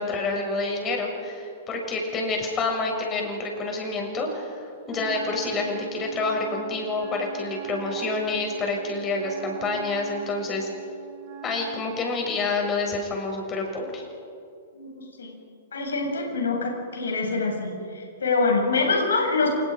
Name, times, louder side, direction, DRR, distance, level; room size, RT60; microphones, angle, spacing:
voice 1, 0.0-10.7 11.4-14.0, left 3 dB, 25° left, 1 dB, 7.0 m, -28 dB
Wind instrument woodwind instrument, 4.8-12.1, right 9 dB, 40° right, 4.8 m, -41 dB
voice 2, 14.7-15.3 15.7-19.6, left 3 dB, 70° left, 1 dB, 7.5 m, -25 dB
29.5 x 28.0 x 5.2 m, 2.5 s
figure-of-eight pair, 105°, 0 cm